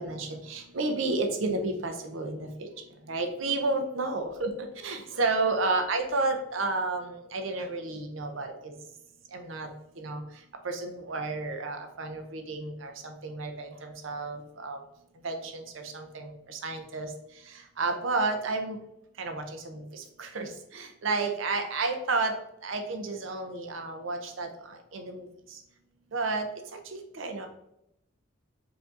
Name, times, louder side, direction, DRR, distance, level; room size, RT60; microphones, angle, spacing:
voice 1, 0.0-2.7 3.1-8.7 9.3-9.7 10.0-10.2 10.6-14.8 15.2-15.6 15.9-17.1 17.8-18.8 19.2-22.3 22.6-24.5 24.9-25.2 26.1-26.5 26.9-27.5, right 3 dB, 80° right, 5 dB, 0.7 m, -31 dB
4.8 x 2.7 x 3.6 m, 0.82 s
head